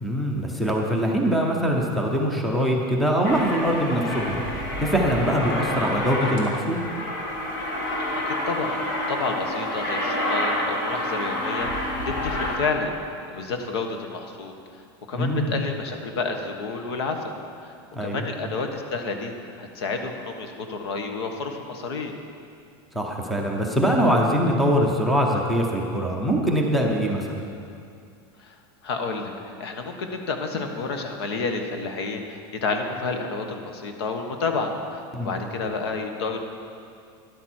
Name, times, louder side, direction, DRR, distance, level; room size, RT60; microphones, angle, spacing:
voice 1, 0.0-4.4 4.8-6.8 15.1-15.6 17.9-18.2 22.9-27.4 35.1-35.3, equal, ahead, 0 dB, 0.7 m, -23 dB
Aircraft, 3.2-12.6, left 1 dB, 65° left, 2.1 m, -28 dB
voice 2, 5.6-5.9 7.8-8.8 9.1-12.9 13.3-14.6 15.1-17.3 17.6-17.7 18.0-19.3 19.6-22.1 28.4-28.6 28.8-29.3 29.6-36.5, left 4 dB, 80° left, 5 dB, 1.4 m, -30 dB
12.5 x 11.0 x 4.4 m, 2.4 s
supercardioid pair, 180°, 13 cm